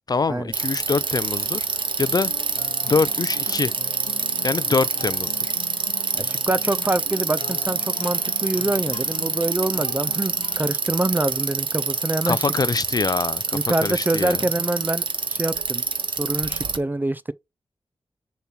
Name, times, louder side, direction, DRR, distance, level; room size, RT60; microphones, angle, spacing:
voice 1, 0.0-1.7 2.0-2.3 2.8-3.7 4.4-5.5 12.3-14.4, left 4 dB, 40° left, 0.4 m, -24 dB
Bicycle, 0.5-16.8, right 4 dB, 55° right, 0.9 m, -26 dB
sound 1, 2.0-10.7, left 7 dB, 90° left, 0.8 m, -41 dB
voice 2, 6.1-12.5 13.5-15.8 16.2-17.3, right 2 dB, 20° right, 0.4 m, -25 dB
6.9 x 3.0 x 5.6 m
wide cardioid pair, 75°, 10 cm